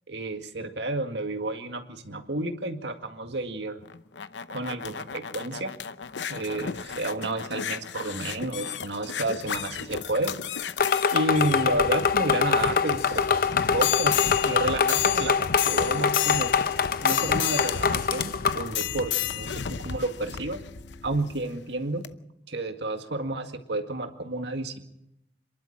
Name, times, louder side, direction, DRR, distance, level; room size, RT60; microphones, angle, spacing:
voice 1, 0.1-3.8 4.5-5.7 6.3-10.4 11.1-14.2 14.4-16.5 17.0-20.6 21.0-22.1 22.5-24.8, right 2 dB, 80° right, 6 dB, 2.0 m, -31 dB
sound 1, 3.8-21.5 22.0-22.1, left 9 dB, 90° left, 0.8 m, -33 dB
sound 2, 10.8-18.7, left 6 dB, 55° left, 0.7 m, -24 dB
sound 3, 11.4-21.4, left 2 dB, 20° left, 2.6 m, -52 dB
27.0 x 12.0 x 8.7 m, 0.84 s
head